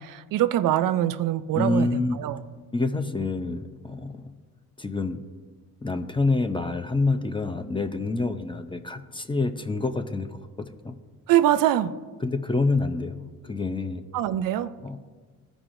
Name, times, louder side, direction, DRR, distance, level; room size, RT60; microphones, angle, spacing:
voice 1, 0.0-2.4 11.3-11.9 14.1-14.7, right 12 dB, 65° right, 0.5 m, -23 dB
voice 2, 1.5-2.2 2.7-4.3 4.8-5.2 5.8-10.4 10.8-11.0 12.2-14.0 14.8-15.0, left 3 dB, 15° left, 0.6 m, -27 dB
14.0 x 5.0 x 2.6 m
supercardioid pair, 65°, 35 cm